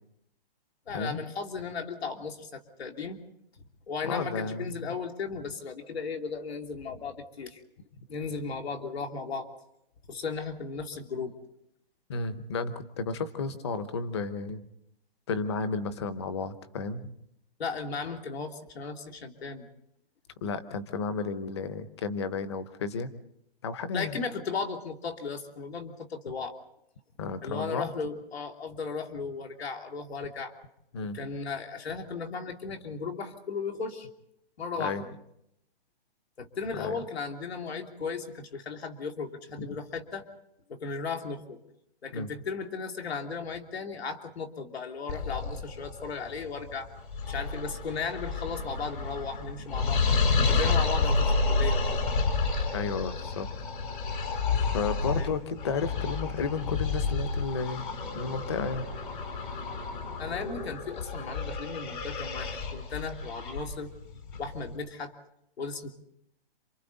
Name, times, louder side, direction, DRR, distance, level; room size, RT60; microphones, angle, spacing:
voice 1, 0.9-3.2 3.9-7.6 8.1-9.5 10.1-11.3 17.6-19.7 23.9-26.5 27.4-30.5 31.1-34.1 34.6-35.1 36.4-40.3 40.7-41.6 42.0-46.9 47.3-50.0 50.4-52.0 55.1-55.3 60.2-63.9 64.4-65.1 65.6-65.9, left 5 dB, 90° left, 4 dB, 2.8 m, -36 dB
voice 2, 4.0-4.7 12.1-14.6 15.3-17.1 20.4-23.1 23.6-24.2 27.2-27.9 30.9-31.2 34.8-35.0 36.7-37.0 42.1-42.3 52.7-53.5 54.7-57.9 58.1-58.9, left 4 dB, 25° left, 12 dB, 0.9 m, -32 dB
sound 1, 45.1-64.7, left 4 dB, 55° left, 3.4 m, -30 dB
27.5 x 26.0 x 4.0 m, 0.79 s
hypercardioid pair, 180°, 30 cm